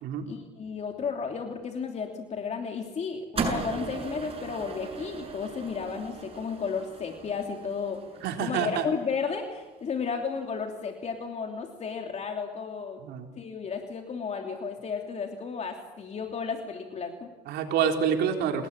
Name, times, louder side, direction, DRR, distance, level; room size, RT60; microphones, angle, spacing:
voice 1, 0.3-8.0 8.4-13.0 13.4-17.3, left 5 dB, 40° left, 3 dB, 3.1 m, -33 dB
sound 1, 3.4-9.7, right 4 dB, 35° right, 7.4 m, -37 dB
voice 2, 8.2-8.8 13.0-13.3 17.5-18.7, right 7 dB, 80° right, 4 dB, 4.0 m, -27 dB
29.0 x 20.0 x 8.7 m, 1.1 s
cardioid pair, 110°, 17 cm